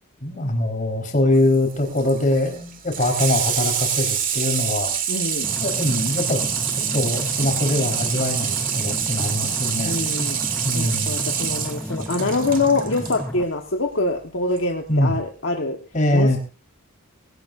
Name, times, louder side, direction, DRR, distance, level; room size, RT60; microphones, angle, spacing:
voice 1, 0.2-4.9 5.6-6.4 6.7-10.0 10.6-11.2 14.9-15.1 15.9-16.4, left 1 dB, 35° left, 3 dB, 4.3 m, -22 dB
Water tap faucet / Sink (filling or washing), 1.3-13.2 14.5-14.6, right 8 dB, 40° right, 2.4 m, -26 dB
voice 2, 5.1-5.5 9.8-10.4 10.7-15.8 16.1-16.4, left 3 dB, 60° left, 2 dB, 1.4 m, -24 dB
sound 1, 5.4-13.4, equal, 5° left, 0.6 m, -32 dB
20.5 x 17.0 x 2.6 m, 0.32 s
head